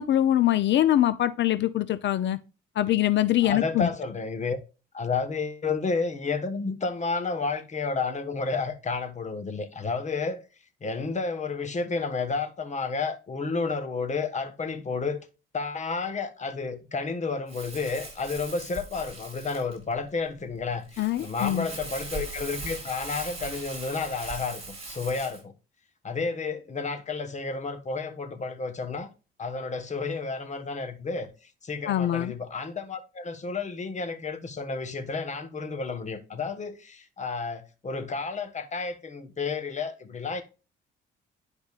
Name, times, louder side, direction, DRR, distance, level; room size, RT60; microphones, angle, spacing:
voice 1, 0.0-2.4 2.8-3.9 21.0-21.7 31.9-32.3, left 12 dB, 65° left, 0.6 m, -23 dB
voice 2, 3.4-4.6 4.9-10.4 10.8-15.2 15.5-25.5 26.0-29.1 29.4-31.3 31.6-40.4, left 4 dB, 35° left, 1.3 m, -31 dB
Crumpling crinkling, 17.5-25.4, right 3 dB, 30° right, 4.0 m, -40 dB
10.5 x 5.2 x 2.4 m
cardioid pair, 90°, 20 cm